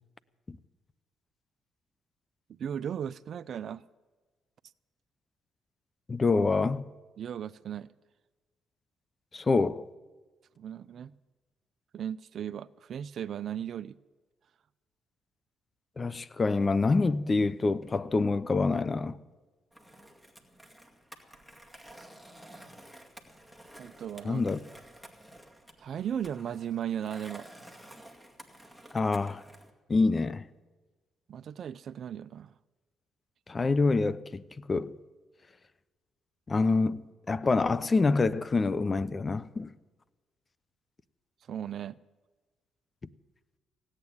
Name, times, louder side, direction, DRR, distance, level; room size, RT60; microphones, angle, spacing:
voice 1, 2.5-3.8 7.2-7.9 10.6-11.1 11.9-14.0 23.8-24.4 25.8-27.7 31.3-32.5 41.5-41.9, right 9 dB, 60° right, 0.5 m, -36 dB
voice 2, 6.1-6.8 9.3-9.9 16.0-19.2 24.2-24.6 28.9-29.4 29.9-30.4 33.5-34.4 34.7-34.9 36.5-39.7, left 3 dB, 30° left, 0.7 m, -26 dB
Skateboard, 19.7-29.7, right 1 dB, 5° left, 2.2 m, -52 dB
17.0 x 8.9 x 9.6 m
supercardioid pair, 70°, 0 cm